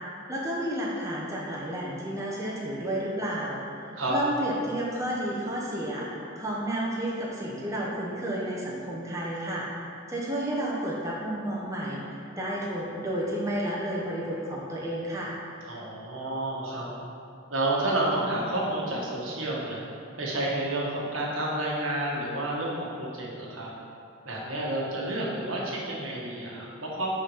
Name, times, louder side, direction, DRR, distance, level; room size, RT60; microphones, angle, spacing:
voice 1, 0.3-3.6 3.9-9.7 10.1-15.3, right 1 dB, 15° right, -5 dB, 0.9 m, -31 dB
voice 2, 15.7-16.9 17.5-19.8 20.2-23.7 24.2-27.1, right 1 dB, 70° right, -4 dB, 1.3 m, -30 dB
5.9 x 4.2 x 5.6 m, 2.5 s
head